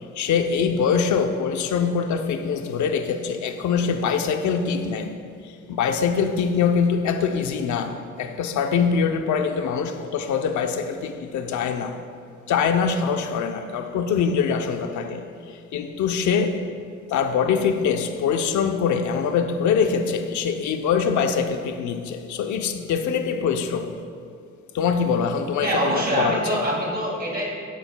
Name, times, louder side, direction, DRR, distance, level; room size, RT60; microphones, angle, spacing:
voice 1, 0.1-5.1 5.7-12.0 12.5-16.6 17.1-23.9 24.7-26.6, left 6 dB, 70° left, 7 dB, 0.8 m, -23 dB
voice 2, 25.6-27.4, right 1 dB, 30° right, -3 dB, 2.2 m, -24 dB
13.0 x 9.7 x 2.3 m, 2.4 s
cardioid pair, 90°, 30 cm